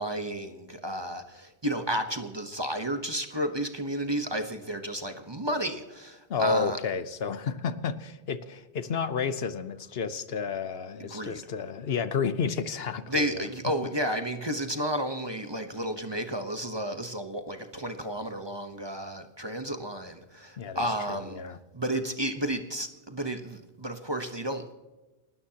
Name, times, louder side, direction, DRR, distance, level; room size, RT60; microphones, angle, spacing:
voice 1, 0.0-6.8 11.0-11.4 13.1-21.4 21.7-24.7, right 1 dB, 25° right, 7 dB, 1.0 m, -32 dB
voice 2, 6.3-13.3 20.6-21.6, left 5 dB, 60° left, 13 dB, 1.0 m, -31 dB
29.5 x 13.0 x 2.9 m, 1.1 s
omnidirectional pair, 1.2 m